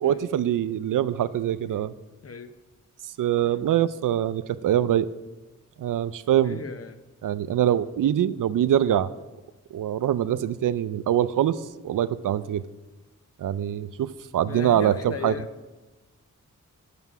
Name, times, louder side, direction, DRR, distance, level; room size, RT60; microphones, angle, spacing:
voice 1, 0.0-1.9 3.2-5.1 5.8-6.6 7.2-9.1 9.7-12.6 13.4-15.3, right 10 dB, 75° right, 16 dB, 0.5 m, -24 dB
voice 2, 6.4-7.0 14.5-15.5, left 6 dB, 50° left, 10 dB, 0.8 m, -36 dB
9.3 x 6.7 x 5.9 m, 1.1 s
cardioid pair, 70°, 32 cm